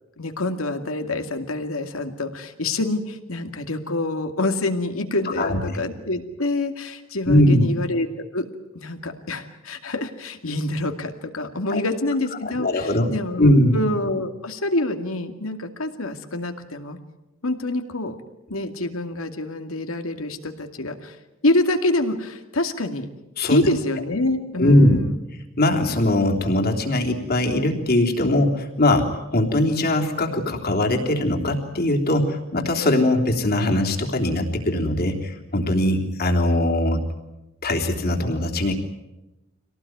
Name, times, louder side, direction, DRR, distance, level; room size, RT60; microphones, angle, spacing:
voice 1, 0.2-8.4 8.7-17.0 17.4-18.2 18.5-21.2 21.4-23.1 23.5-25.2, left 2 dB, 80° left, 6 dB, 2.3 m, -26 dB
voice 2, 5.2-5.6 7.3-7.7 11.7-11.8 12.4-13.1 13.4-13.8 23.4-23.6 24.6-25.0 25.6-37.0 37.6-38.7, left 1 dB, 50° left, 2 dB, 3.4 m, -20 dB
26.0 x 18.5 x 9.5 m, 0.99 s
head